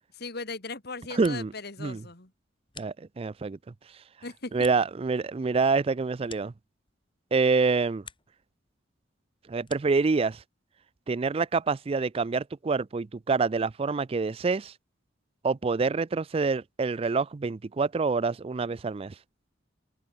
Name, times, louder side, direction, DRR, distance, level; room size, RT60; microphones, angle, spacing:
voice 1, 0.1-2.3 4.2-4.5, left 3 dB, 55° left, 2.3 m, -38 dB
voice 2, 1.1-1.5 1.8-2.0 2.8-3.6 4.5-6.5 7.3-8.0 9.5-10.4 11.1-14.7 15.4-19.1, right 4 dB, 30° right, 0.4 m, -26 dB
sound 1, 2.3-3.5 3.9-7.2 7.5-8.5 8.8-10.1, left 7 dB, 25° left, 3.4 m, -52 dB
head